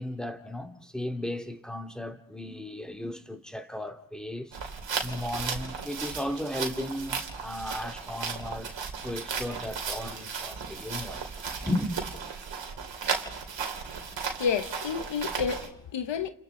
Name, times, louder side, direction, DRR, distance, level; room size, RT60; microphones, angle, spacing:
voice 1, 0.0-4.6 5.0-11.9, left 1 dB, ahead, 2.4 m, -35 dB
sound 1, 4.5-15.7, right 5 dB, 90° right, 2.8 m, -35 dB
voice 2, 14.4-16.3, left 6 dB, 85° left, 1.1 m, -30 dB
29.5 x 28.0 x 3.9 m
cardioid pair, 55°, 43 cm